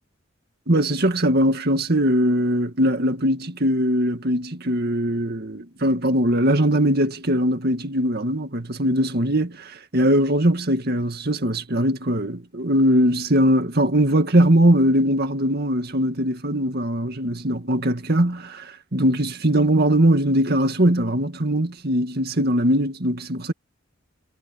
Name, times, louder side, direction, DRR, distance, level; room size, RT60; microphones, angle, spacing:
voice 1, 0.7-23.5, right 1 dB, 55° right, 2.1 m, -21 dB
head